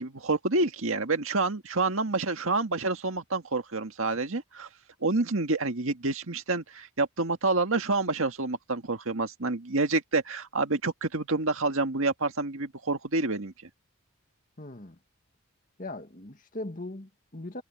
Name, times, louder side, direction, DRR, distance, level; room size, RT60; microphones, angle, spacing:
voice 1, 0.0-4.7 5.0-13.5, right 3 dB, 70° right, 1.8 m, -28 dB
voice 2, 14.6-15.0 15.8-17.6, left 2 dB, 35° left, 1.8 m, -39 dB
head